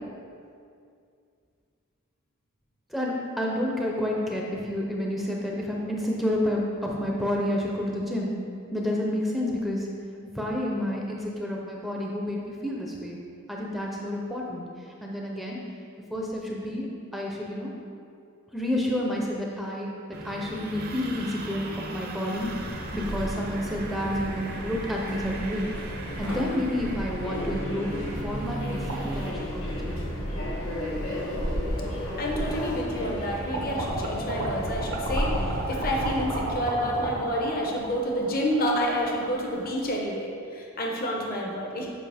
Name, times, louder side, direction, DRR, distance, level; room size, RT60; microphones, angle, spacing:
voice 1, 2.9-8.3 8.7-9.9 10.2-13.2 13.5-14.6 15.0-15.6 16.1-17.7 18.5-19.9 20.2-25.7 26.2-27.9 28.2-30.0, left 1 dB, ahead, -3 dB, 0.6 m, -30 dB
sound 1, 20.1-29.3, right 2 dB, 45° right, 0.6 m, -38 dB
Subway metro underground, 22.3-36.7, equal, 85° left, 1.2 m, -33 dB
sound 2, 28.9-30.0 30.8-30.9 32.1-32.2 32.6-33.2 33.5-40.0, right 1 dB, 90° right, 1.1 m, -33 dB
voice 2, 32.2-41.9, equal, 45° left, -1 dB, 0.8 m, -29 dB
7.6 x 5.1 x 3.4 m, 2.4 s
head